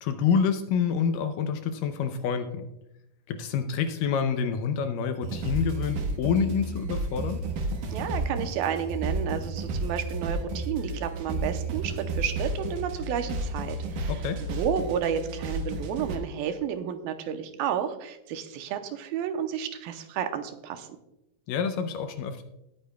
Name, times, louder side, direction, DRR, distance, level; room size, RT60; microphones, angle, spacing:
voice 1, 0.0-2.7 3.3-7.4 14.1-14.4 21.5-22.4, left 6 dB, 75° left, 8 dB, 2.1 m, -27 dB
sound 1, 5.2-16.2, right 2 dB, 65° right, 2.6 m, -32 dB
voice 2, 7.9-14.2 14.5-20.9, right 8 dB, 80° right, 7 dB, 2.5 m, -31 dB
19.0 x 9.1 x 2.3 m, 0.87 s
omnidirectional pair, 4.3 m